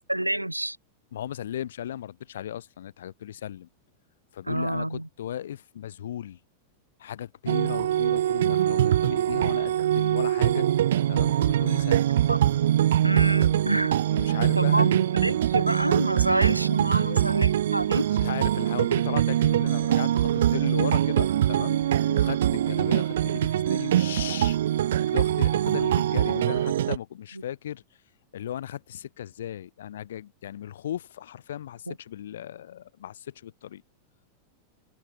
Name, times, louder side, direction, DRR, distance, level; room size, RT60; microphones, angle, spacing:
voice 1, 0.1-0.8 4.5-5.1 12.3-12.4 13.0-13.9 14.5-18.1 31.9-32.0, right 1 dB, 85° right, 3.5 m, -27 dB
voice 2, 1.1-3.7 4.3-6.4 7.0-10.7 11.1-12.1 14.1-14.9 16.8-17.2 18.2-21.8 22.1-24.6 24.9-27.8 28.3-33.8, left 11 dB, 60° left, 1.7 m, -36 dB
sound 1, 7.5-27.0, right 11 dB, 60° right, 1.2 m, -23 dB
figure-of-eight pair, 90°, 0 cm